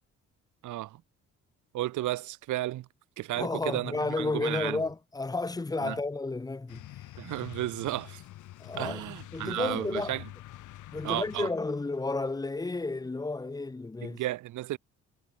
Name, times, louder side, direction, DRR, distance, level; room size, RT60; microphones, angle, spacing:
voice 1, 0.6-1.0 1.7-2.9 3.2-4.8 5.8-6.0 7.2-8.2 8.8-10.2 11.0-11.5 14.0-14.8, right 15 dB, 75° right, 1.0 m, -33 dB
voice 2, 3.4-6.9 8.6-10.2 10.9-14.2, left 3 dB, 10° left, 0.7 m, -32 dB
sound 1, 6.7-11.8, left 15 dB, 85° left, 2.5 m, -46 dB
cardioid pair, 90°, 30 cm